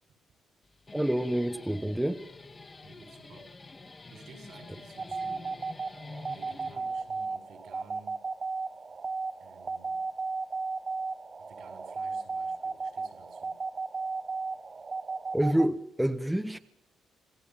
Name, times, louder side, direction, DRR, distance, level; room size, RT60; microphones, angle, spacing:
Guitar, 0.6-7.2, left 3 dB, 30° left, 2.1 m, -48 dB
voice 1, 0.9-2.2 15.3-16.6, right 1 dB, 5° right, 1.0 m, -27 dB
voice 2, 2.8-3.5 4.1-5.7 6.3-8.2 9.4-10.1 11.4-13.6, right 5 dB, 75° right, 5.9 m, -54 dB
sound 1, 5.0-15.7, right 4 dB, 35° right, 1.1 m, -35 dB
27.5 x 16.5 x 7.4 m
cardioid pair, 90°, 0 cm